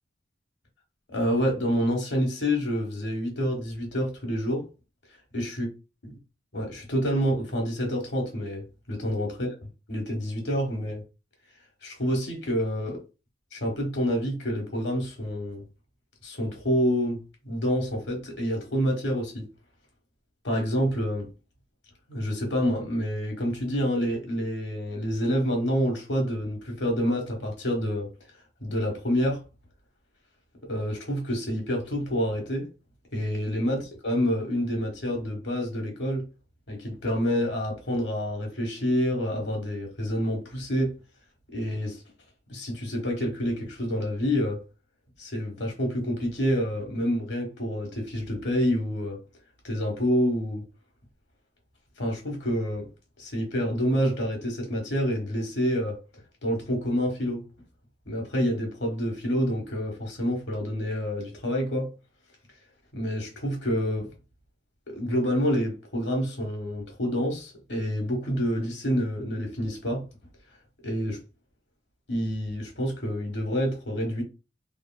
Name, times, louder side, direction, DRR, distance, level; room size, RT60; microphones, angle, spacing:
voice 1, 1.1-4.7 5.3-5.7 6.0-6.2 6.5-9.5 9.9-11.0 11.8-13.0 13.5-15.6 16.2-19.4 20.4-21.3 22.1-28.1 28.6-29.4 30.7-32.7 33.1-36.2 36.7-40.9 41.5-42.0 42.5-44.6 45.2-49.2 49.6-50.6 52.0-52.9 53.2-56.0 56.4-57.4 58.1-61.9 62.9-64.1 64.9-70.0 70.8-71.2 72.1-74.2, equal, 70° left, 1.1 m, -28 dB
3.0 x 2.3 x 2.2 m
head